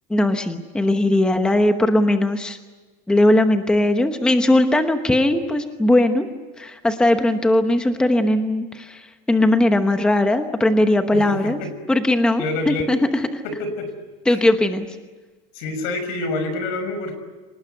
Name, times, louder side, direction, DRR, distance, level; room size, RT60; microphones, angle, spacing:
voice 1, 0.1-2.6 3.1-6.3 6.6-11.6 11.9-13.4 14.3-14.9, left 1 dB, 5° left, 7 dB, 1.0 m, -19 dB
voice 2, 11.1-11.7 12.4-12.9 13.4-13.9 14.3-14.4 15.5-17.1, left 2 dB, 55° left, 9 dB, 5.7 m, -27 dB
27.0 x 19.5 x 9.2 m, 1.3 s
supercardioid pair, 165°, 20 cm